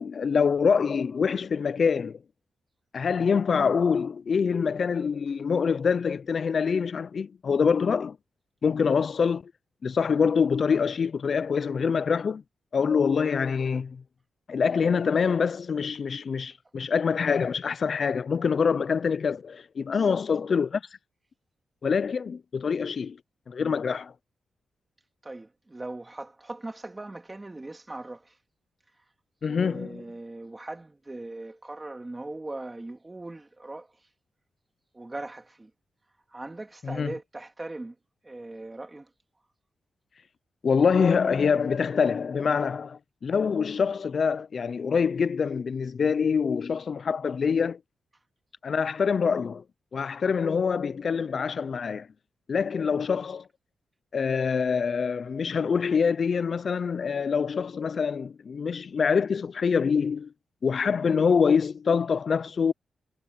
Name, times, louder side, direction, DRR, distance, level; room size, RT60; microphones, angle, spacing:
voice 1, 0.0-2.2 2.9-8.2 8.6-9.4 9.8-12.4 12.7-14.0 14.5-20.8 21.8-23.2 23.5-24.1 29.4-30.0 36.8-37.1 40.6-47.8 48.6-49.6 49.9-52.1 52.5-53.4 54.1-60.3 60.6-62.7, left 6 dB, 45° left, 0.3 m, -25 dB
voice 2, 25.2-28.3 29.4-33.9 34.9-35.7 36.3-37.9 38.2-39.1, right 2 dB, 15° right, 2.1 m, -39 dB
wide cardioid pair, 135°, 0 cm